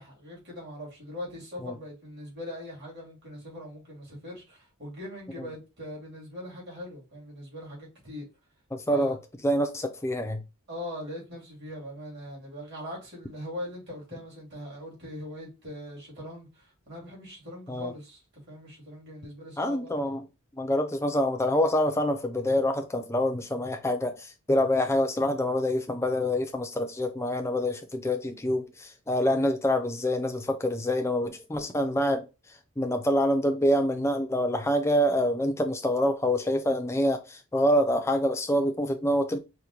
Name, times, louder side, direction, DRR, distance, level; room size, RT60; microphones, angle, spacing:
voice 1, 0.0-8.3 8.9-9.1 10.7-18.2 18.5-19.9, left 1 dB, 50° right, 2.3 m, -41 dB
voice 2, 8.7-9.1 9.4-10.4 17.7-17.9 19.6-20.2 20.6-32.3 32.8-39.4, left 1 dB, 10° left, 0.4 m, -26 dB
5.0 x 2.1 x 2.9 m
head